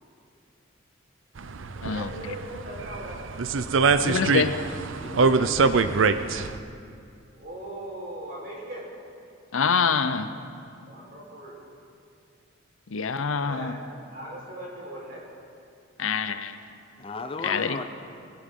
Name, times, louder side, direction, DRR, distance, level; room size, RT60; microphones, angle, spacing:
sound 1, 1.4-6.6, right 4 dB, 70° right, 0.5 m, -24 dB
voice 1, 1.7-3.2 7.4-8.9 10.9-11.6 13.3-13.8 14.1-15.2, right 1 dB, 45° right, -4 dB, 4.3 m, -39 dB
voice 2, 4.0-4.5 9.5-10.3 12.9-13.8 16.0-16.6 17.4-17.8, left 5 dB, 75° left, 11 dB, 0.7 m, -25 dB
voice 3, 5.0-6.1 17.0-17.8, left 3 dB, 25° left, 7 dB, 0.5 m, -37 dB
22.0 x 16.0 x 3.8 m, 2.4 s
head